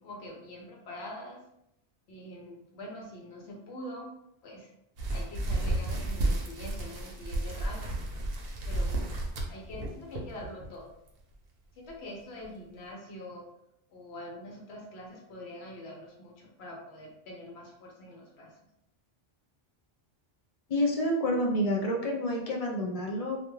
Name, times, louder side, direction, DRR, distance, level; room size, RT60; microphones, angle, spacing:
voice 1, 0.0-1.4 2.1-4.2 4.4-4.7 5.1-8.0 8.7-9.2 9.5-10.9 11.8-13.4 13.9-18.5, left 1 dB, 85° left, -2 dB, 0.9 m, -44 dB
sound 1, 5.0-10.7 11.1-11.3 11.9-12.0 12.4-12.5, right 2 dB, 70° right, 0.8 m, -32 dB
voice 2, 20.7-23.4, left 1 dB, 50° left, 0 dB, 0.4 m, -28 dB
2.3 x 2.2 x 3.0 m, 0.80 s
omnidirectional pair, 1.1 m